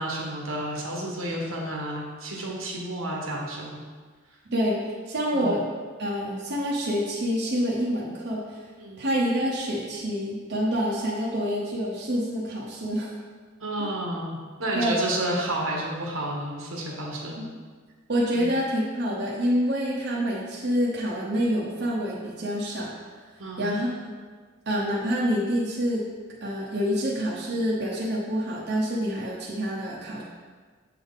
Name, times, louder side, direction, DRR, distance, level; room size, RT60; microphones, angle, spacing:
voice 1, 0.0-3.8 5.3-5.6 8.8-9.0 13.6-17.4 18.3-18.5 23.4-23.7, right 1 dB, 85° right, -2 dB, 1.2 m, -31 dB
voice 2, 4.5-5.6 6.0-8.6 9.0-13.1 13.8-13.9 14.7-15.0 17.4-17.5 18.1-23.0 23.6-24.1 24.7-26.0 26.4-30.2, equal, 55° right, -5 dB, 0.9 m, -27 dB
7.5 x 3.6 x 4.0 m, 1.5 s
head